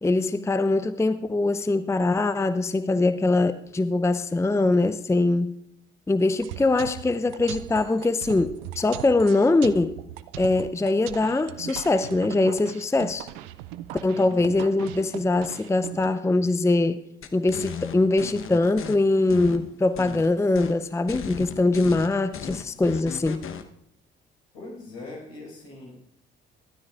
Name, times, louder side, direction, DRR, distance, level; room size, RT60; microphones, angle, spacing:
voice 1, 0.0-5.5 6.1-10.0 10.4-13.3 14.0-17.0 17.3-23.5, left 2 dB, 10° left, 11 dB, 0.7 m, -22 dB
sound 1, 6.4-16.1, right 13 dB, 70° right, 0.6 m, -39 dB
sound 2, 17.2-18.9 19.3-20.3 20.5-20.8 21.1-23.6, left 7 dB, 45° left, 1.1 m, -36 dB
voice 2, 24.5-26.0, left 2 dB, 75° left, -1 dB, 5.3 m, -41 dB
25.0 x 13.0 x 2.5 m, 0.80 s
figure-of-eight pair, 50°, 30 cm